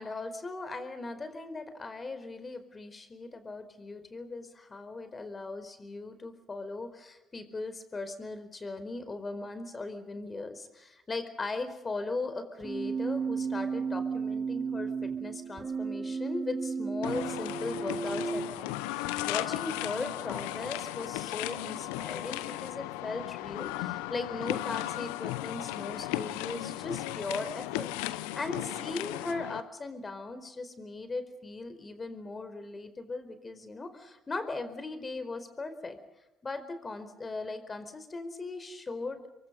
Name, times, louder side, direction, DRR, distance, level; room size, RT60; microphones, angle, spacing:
voice 1, 0.0-36.0 36.4-39.2, left 3 dB, 30° left, 9 dB, 4.5 m, -38 dB
Keyboard (musical), 12.6-18.6, right 5 dB, 35° right, 1.9 m, -33 dB
sound 1, 17.0-29.6, left 16 dB, 80° left, 0.9 m, -36 dB
29.0 x 23.0 x 5.4 m, 0.99 s
hypercardioid pair, 50°, 0 cm